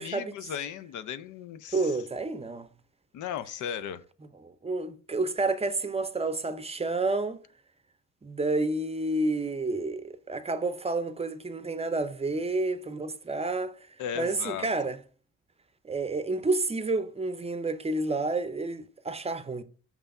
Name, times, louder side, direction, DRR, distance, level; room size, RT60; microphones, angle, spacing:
voice 1, 0.0-2.0 3.1-4.0 14.0-14.7, left 9 dB, 75° left, 0.6 m, -36 dB
voice 2, 1.7-2.7 4.4-7.4 8.2-13.7 14.2-15.0 15.8-19.6, right 2 dB, 20° right, 0.6 m, -30 dB
6.0 x 3.3 x 5.3 m
cardioid pair, 90°, 30 cm